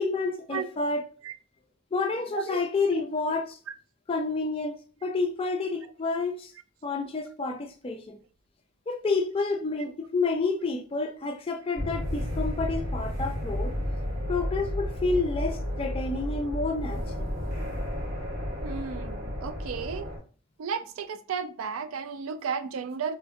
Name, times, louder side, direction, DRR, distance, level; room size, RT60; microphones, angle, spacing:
voice 1, 0.0-1.1 1.9-3.6 4.1-6.5 6.8-8.2 8.9-13.7 14.3-17.3, left 3 dB, 25° left, 0.4 m, -29 dB
sound 1, 11.8-20.2, left 1 dB, 55° right, 1.3 m, -32 dB
voice 2, 18.6-20.1 20.6-23.2, right 6 dB, 80° right, 0.4 m, -33 dB
3.8 x 2.4 x 2.5 m
head